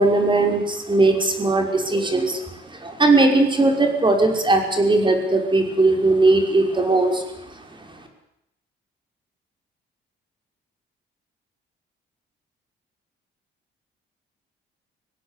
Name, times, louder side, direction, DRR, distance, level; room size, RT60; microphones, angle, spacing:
voice 1, 0.0-7.2, right 2 dB, 25° right, 4 dB, 5.6 m, -19 dB
23.5 x 17.5 x 8.3 m, 0.85 s
cardioid pair, 90°, 20 cm